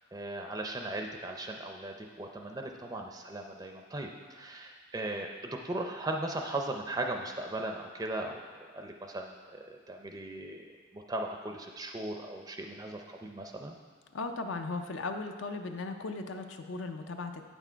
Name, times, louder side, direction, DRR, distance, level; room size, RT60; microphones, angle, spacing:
voice 1, 0.1-13.8, right 2 dB, 20° right, 3 dB, 0.4 m, -38 dB
voice 2, 14.1-17.4, left 3 dB, 70° left, 6 dB, 0.5 m, -37 dB
9.0 x 6.1 x 4.5 m, 1.5 s
head